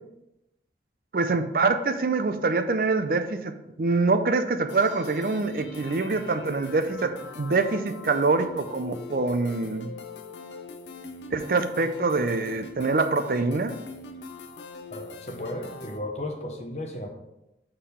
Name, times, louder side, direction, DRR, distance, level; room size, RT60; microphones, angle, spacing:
voice 1, 1.1-9.9 11.3-13.8, right 3 dB, 55° right, 9 dB, 0.4 m, -25 dB
sound 1, 4.7-16.0, left 3 dB, 80° left, 0.6 m, -42 dB
voice 2, 14.9-17.1, left 1 dB, 40° left, 2 dB, 0.9 m, -34 dB
6.6 x 3.7 x 5.4 m, 0.94 s
head